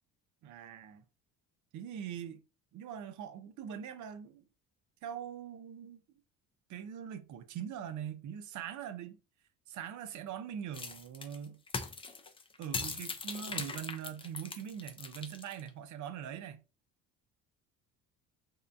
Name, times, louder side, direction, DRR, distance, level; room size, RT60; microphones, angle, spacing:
voice 1, 0.4-1.0 1.7-2.4 2.7-4.4 5.0-6.2 6.7-9.2 9.7-11.6 12.6-16.6, right 9 dB, 55° right, 0.6 m, -42 dB
sound 1, 10.7-15.7, left 4 dB, 15° left, 0.4 m, -40 dB
2.7 x 2.1 x 2.4 m
supercardioid pair, 90°, 35 cm